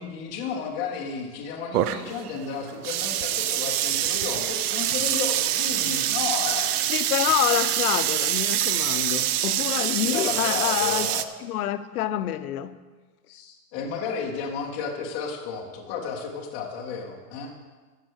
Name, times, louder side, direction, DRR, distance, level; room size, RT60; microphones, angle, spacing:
voice 1, 0.0-6.9 10.0-11.2 13.3-17.5, left 6 dB, 15° left, -1 dB, 0.5 m, -33 dB
sound 1, 1.7-11.2, right 12 dB, 70° right, 0.7 m, -25 dB
voice 2, 6.9-11.1 11.4-12.8, left 12 dB, 70° left, 12 dB, 0.7 m, -27 dB
11.5 x 7.4 x 6.2 m, 1.4 s
supercardioid pair, 175°, 47 cm